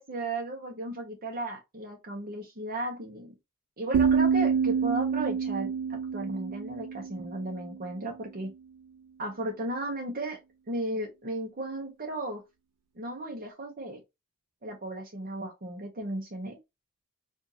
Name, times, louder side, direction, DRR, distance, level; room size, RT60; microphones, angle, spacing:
voice 1, 0.0-3.3 3.8-8.5 9.2-10.4 10.7-12.4 13.0-14.0 14.6-16.6, right 1 dB, 40° right, 0.8 m, -35 dB
sound 1, 3.9-7.8, right 6 dB, 85° right, 0.3 m, -27 dB
4.7 x 2.5 x 2.8 m
head